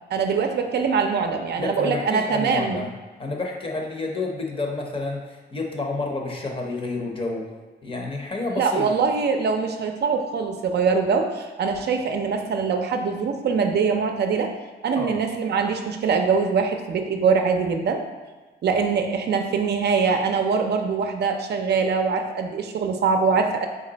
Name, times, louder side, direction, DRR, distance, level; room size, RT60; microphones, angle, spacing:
voice 1, 0.1-2.8 8.5-14.5 14.8-18.0 18.6-23.7, right 5 dB, 65° right, 4 dB, 0.5 m, -23 dB
voice 2, 1.6-2.9 3.2-7.5 7.8-8.9 14.9-15.2, left 3 dB, 30° left, 1 dB, 0.7 m, -29 dB
3.8 x 3.1 x 3.9 m, 1.3 s
cardioid pair, 110°, 19 cm